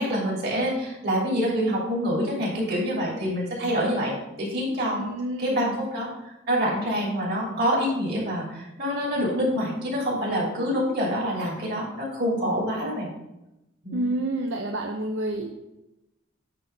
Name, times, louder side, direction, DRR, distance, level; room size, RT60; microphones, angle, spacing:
voice 1, 0.0-5.0 5.4-13.1 13.8-14.1, equal, 55° right, -4 dB, 3.1 m, -26 dB
voice 2, 4.9-5.6 13.9-15.5, right 1 dB, 75° right, 2 dB, 0.7 m, -29 dB
9.6 x 3.5 x 5.4 m, 0.91 s
head